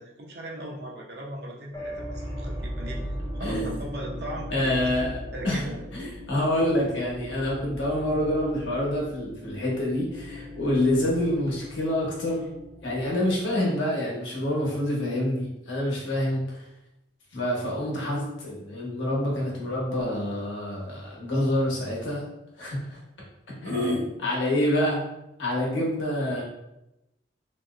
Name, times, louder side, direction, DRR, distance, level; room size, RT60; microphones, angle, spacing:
voice 1, 0.0-3.1 3.3-5.0 5.3-5.8 23.5-24.0, right 1 dB, 60° right, -1 dB, 0.6 m, -37 dB
sound 1, 1.7-13.6, equal, 20° left, 0.4 m, -38 dB
voice 2, 3.4-3.7 4.5-5.2 5.4-5.6 5.9-12.5 12.8-16.6 17.3-22.2 22.6-23.0 23.6-25.0 25.4-26.4, left 1 dB, 90° left, -4 dB, 1.0 m, -27 dB
2.9 x 2.7 x 2.4 m, 0.90 s
head